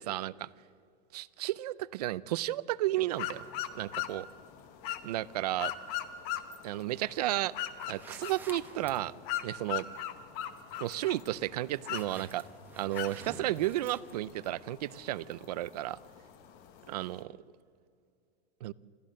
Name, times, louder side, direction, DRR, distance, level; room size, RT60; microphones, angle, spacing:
voice 1, 0.1-0.5 1.1-3.4 3.7-4.3 5.0-5.7 6.6-7.5 7.9-9.1 9.4-9.9 10.8-12.4 12.8-16.0 16.9-17.3 18.6-18.7, right 15 dB, 40° right, 19 dB, 0.4 m, -33 dB
sound 1, 3.1-17.2, left 11 dB, 30° left, 1.0 m, -41 dB
sound 2, 7.9-14.5, right 3 dB, 5° right, 1.0 m, -52 dB
28.0 x 13.5 x 7.5 m, 2.5 s
supercardioid pair, 170°, 32 cm